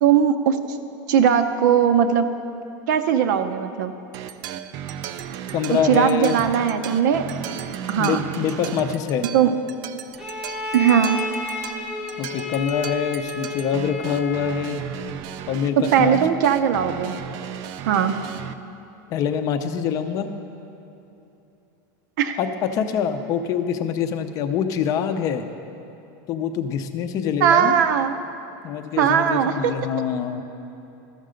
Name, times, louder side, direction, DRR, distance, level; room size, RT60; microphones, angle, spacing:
voice 1, 0.0-0.6 1.1-2.3 2.9-3.9 5.7-7.3 7.9-8.2 9.3-9.6 10.7-11.2 15.8-17.2 17.9-18.2 22.2-22.4 27.4-28.2 29.0-29.7, right 8 dB, 70° right, 9 dB, 0.7 m, -19 dB
sound 1, 4.1-18.5, right 9 dB, 40° right, 0.3 m, -35 dB
voice 2, 5.5-6.4 8.0-9.2 12.2-14.8 15.5-16.2 19.1-20.3 22.4-25.4 26.3-27.8 28.6-30.4, left 8 dB, 35° left, 8 dB, 0.5 m, -25 dB
Bowed string instrument, 10.2-14.8, left 2 dB, 5° right, 0.8 m, -31 dB
13.0 x 6.5 x 5.1 m, 2.9 s
supercardioid pair, 160°, 10 cm